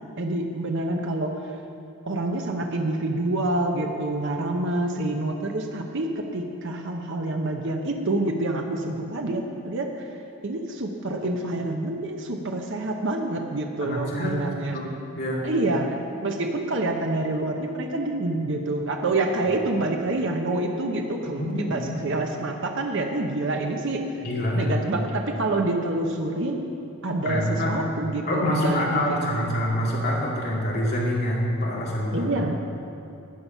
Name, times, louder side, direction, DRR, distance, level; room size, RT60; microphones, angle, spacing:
voice 1, 0.2-1.4 2.1-10.1 10.4-14.8 15.4-24.1 24.5-26.6 27.0-29.5 32.1-32.5, right 2 dB, 55° right, 3 dB, 0.9 m, -27 dB
voice 2, 13.8-14.4 14.7-14.9 15.2-15.4 21.3-21.9 24.2-24.8 27.2-27.7 28.3-32.3, left 1 dB, 45° left, -4 dB, 2.5 m, -26 dB
13.0 x 8.6 x 5.6 m, 2.8 s
head